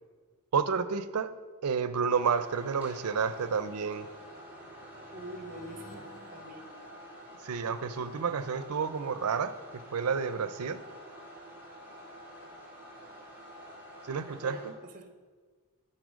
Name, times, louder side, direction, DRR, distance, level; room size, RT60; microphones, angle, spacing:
voice 1, 0.5-1.3 1.6-4.1 7.4-10.8 14.1-14.7, right 6 dB, 85° right, 13 dB, 0.5 m, -30 dB
sound 1, 2.1-7.7, equal, 35° left, 1.2 m, -55 dB
sound 2, 2.1-14.7, equal, 10° right, 2.1 m, -48 dB
voice 2, 5.1-6.7 14.1-15.2, right 1 dB, 40° right, 5 dB, 1.0 m, -46 dB
11.0 x 4.3 x 6.3 m, 1.5 s
head